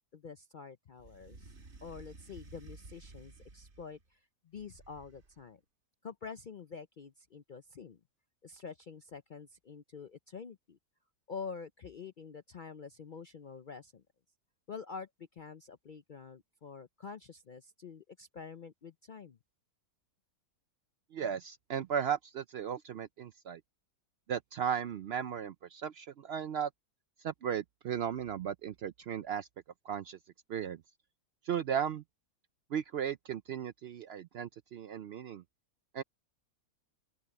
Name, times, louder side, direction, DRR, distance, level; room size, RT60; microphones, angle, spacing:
voice 1, 0.1-1.5 1.8-5.6 6.0-8.0 8.4-10.8 11.3-14.0 14.7-19.4, left 5 dB, 55° left, 0.5 m, -47 dB
sound 1, 1.0-4.0 4.6-5.5, right 3 dB, 45° right, 2.3 m, -54 dB
voice 2, 21.1-23.6 24.3-26.7 27.2-29.5 29.8-30.2 30.5-30.8 31.4-32.0 32.7-35.4 35.9-36.0, right 8 dB, 70° right, 0.6 m, -36 dB
open air
omnidirectional pair, 1.6 m